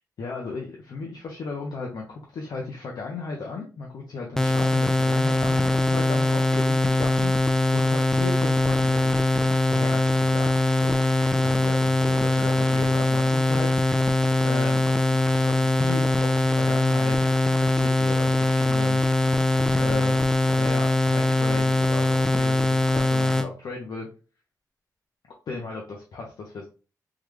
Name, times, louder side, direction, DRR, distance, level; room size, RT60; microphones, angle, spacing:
voice 1, 0.2-9.3 9.7-14.8 15.1-17.1 17.6-19.0 19.8-20.2 20.5-24.1 25.5-26.7, left 3 dB, 85° left, -1 dB, 0.7 m, -35 dB
sound 1, 4.4-23.5, left 2 dB, 10° left, 0.4 m, -22 dB
3.7 x 2.3 x 3.2 m, 0.34 s
cardioid pair, 75°, 7 cm